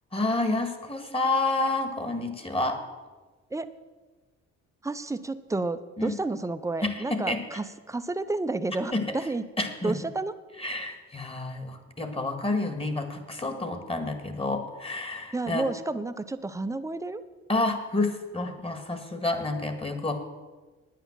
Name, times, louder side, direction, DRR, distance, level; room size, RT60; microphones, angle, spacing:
voice 1, 0.1-2.8 6.0-6.2 6.8-7.4 8.9-9.0 9.6-10.0 10.6-15.6 17.5-20.2, left 2 dB, 20° left, 7 dB, 1.8 m, -29 dB
voice 2, 4.8-9.4 9.8-10.3 15.3-17.2, right 2 dB, 10° right, 11 dB, 0.7 m, -31 dB
9.6 x 9.4 x 7.3 m, 1.3 s
cardioid pair, 90°, 30 cm